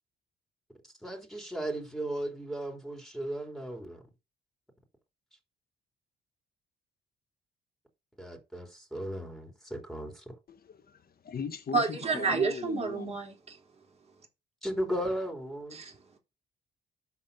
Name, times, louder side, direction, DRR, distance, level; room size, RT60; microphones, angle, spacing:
voice 1, 1.0-4.0 8.2-10.3 14.6-15.8, right 1 dB, ahead, 3.3 m, -36 dB
voice 2, 10.5-13.2, left 6 dB, 50° left, 1.4 m, -39 dB
voice 3, 11.7-13.3 15.7-16.2, right 4 dB, 30° right, 3.4 m, -30 dB
12.0 x 4.2 x 4.1 m
cardioid pair, 90°, 20 cm